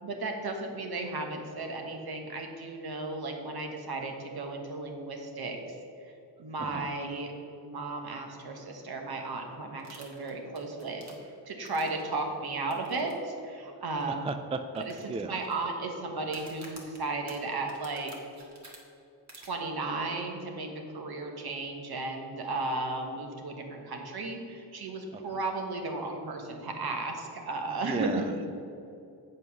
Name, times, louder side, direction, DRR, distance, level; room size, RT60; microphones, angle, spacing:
voice 1, 0.0-5.6 6.4-7.3 7.6-11.0 11.5-14.3 15.0-18.1 19.4-20.7 20.9-28.2, right 3 dB, 55° right, 3 dB, 1.4 m, -34 dB
voice 2, 6.6-6.9 14.1-15.4 25.1-25.4 27.7-28.5, right 3 dB, 15° right, 8 dB, 0.3 m, -36 dB
sound 1, 9.8-12.1 12.7-13.1 13.4-13.5 14.0-14.1 14.7-15.5 16.2-18.8 19.3-19.5, right 2 dB, 40° right, 1.7 m, -50 dB
7.8 x 5.4 x 6.2 m, 2.6 s
cardioid pair, 85°, 44 cm